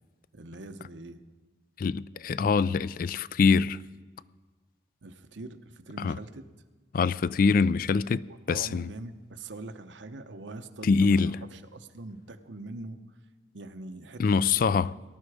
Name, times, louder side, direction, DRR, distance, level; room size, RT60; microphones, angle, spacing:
voice 1, 0.3-1.2 5.0-6.4 8.1-13.2 13.5-14.2 14.9-15.0, right 2 dB, 80° right, 0.9 m, -43 dB
voice 2, 1.8-3.8 6.0-6.2 6.9-8.2 8.5-8.9 10.8-11.4 14.2-15.0, left 5 dB, 50° left, 0.3 m, -24 dB
19.0 x 11.5 x 4.9 m
head